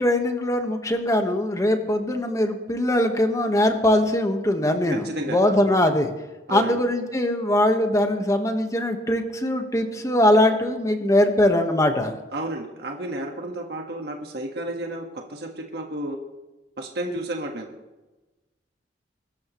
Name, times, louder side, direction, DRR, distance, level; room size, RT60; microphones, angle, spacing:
voice 1, 0.0-6.1 6.5-12.2, left 1 dB, 20° left, 5 dB, 1.4 m, -21 dB
voice 2, 5.0-5.7 6.5-6.8 12.3-16.2 16.8-17.7, right 1 dB, 65° right, 2 dB, 1.6 m, -32 dB
23.5 x 13.0 x 3.2 m, 1.1 s
head